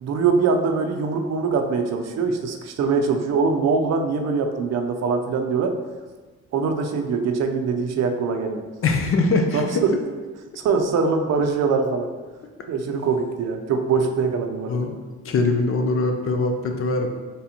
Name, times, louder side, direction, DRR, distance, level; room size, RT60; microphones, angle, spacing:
voice 1, 0.0-5.7 6.5-8.6 9.5-9.9 10.6-12.1 12.7-14.8, right 5 dB, 60° right, 4 dB, 0.5 m, -23 dB
voice 2, 8.8-9.8 14.7-15.0 15.2-17.1, left 3 dB, 45° left, 4 dB, 0.6 m, -22 dB
4.1 x 3.4 x 2.8 m, 1.3 s
cardioid pair, 90°, 30 cm